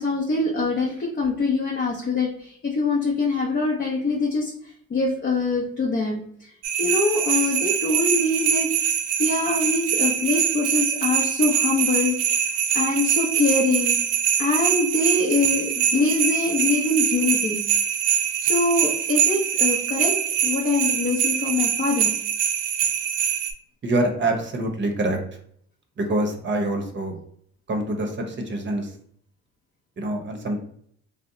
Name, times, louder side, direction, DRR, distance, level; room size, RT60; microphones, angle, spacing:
voice 1, 0.0-4.5 4.9-6.5 6.8-8.9 9.2-12.2 12.7-13.9 14.4-17.6 18.4-20.2 20.4-22.1, left 3 dB, 35° left, -2 dB, 0.6 m, -24 dB
sound 1, 6.6-23.5, right 9 dB, 85° right, 0.5 m, -23 dB
voice 2, 23.8-25.2 26.0-27.2 27.7-28.9 30.0-30.6, right 1 dB, 40° right, 4 dB, 0.7 m, -25 dB
2.7 x 2.1 x 3.7 m, 0.64 s
cardioid pair, 90°, 30 cm